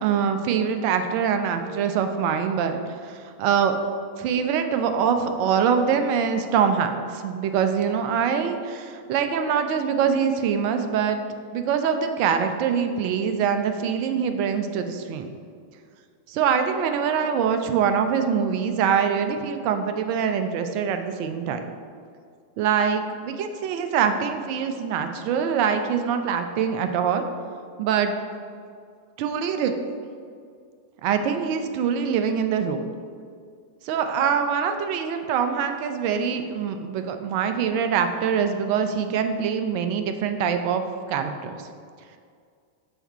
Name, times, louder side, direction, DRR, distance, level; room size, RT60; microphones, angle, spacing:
voice 1, 0.0-3.7 4.2-11.2 11.5-15.3 16.3-21.7 22.6-27.2 27.8-28.1 29.2-29.7 31.0-32.9 33.8-40.8 41.1-41.6, right 7 dB, 45° right, 7 dB, 0.5 m, -24 dB
5.7 x 4.3 x 4.1 m, 2.2 s
figure-of-eight pair, 90°, 0 cm